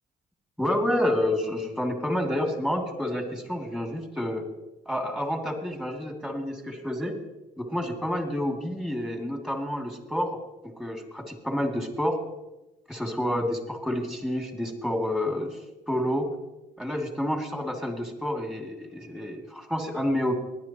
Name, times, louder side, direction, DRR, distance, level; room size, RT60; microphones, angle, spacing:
voice 1, 0.6-4.4 4.9-7.2 7.6-10.4 10.6-12.2 12.9-15.6 15.9-16.3 16.8-20.3, left 1 dB, 5° right, 2 dB, 2.8 m, -29 dB
19.0 x 10.5 x 3.1 m, 1.0 s
supercardioid pair, 60°, 17 cm